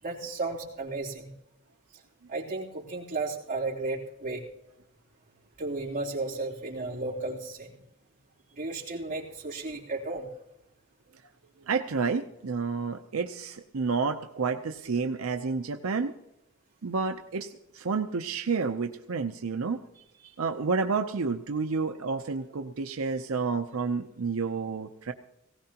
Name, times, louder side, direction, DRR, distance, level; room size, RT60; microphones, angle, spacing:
voice 1, 0.0-1.3 2.3-4.4 5.6-7.8 8.5-10.3 20.2-20.3, right 3 dB, 40° right, -5 dB, 3.2 m, -34 dB
voice 2, 11.7-16.1 16.8-19.8 20.4-25.1, right 4 dB, 85° right, 6 dB, 0.7 m, -30 dB
19.0 x 17.0 x 2.9 m, 0.85 s
head